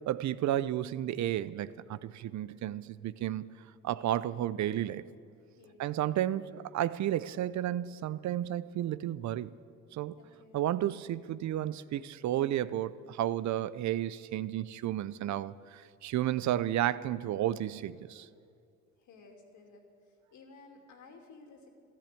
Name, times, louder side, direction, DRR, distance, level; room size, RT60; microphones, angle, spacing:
voice 1, 0.1-3.4 3.8-5.0 5.8-9.5 9.9-10.1 10.5-18.3, right 12 dB, 65° right, 0.6 m, -32 dB
voice 2, 2.4-2.8 5.6-5.9 10.2-10.6 19.0-21.7, left 3 dB, 75° left, 2.7 m, -56 dB
13.5 x 12.5 x 8.4 m
cardioid pair, 90°, 30 cm